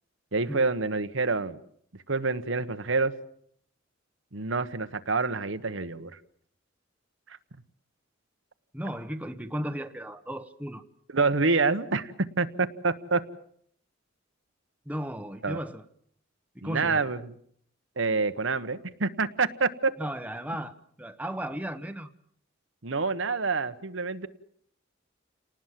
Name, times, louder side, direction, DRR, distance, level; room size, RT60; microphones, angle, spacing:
voice 1, 0.3-1.6 2.1-3.1 4.3-6.1 11.1-13.2 15.4-15.6 16.6-17.2 18.0-19.9 22.8-24.3, right 4 dB, 70° right, 11 dB, 1.2 m, -27 dB
voice 2, 8.7-10.8 14.8-15.8 16.5-17.1 20.0-22.1, equal, 10° right, 8 dB, 1.1 m, -35 dB
29.5 x 19.5 x 7.5 m, 0.67 s
head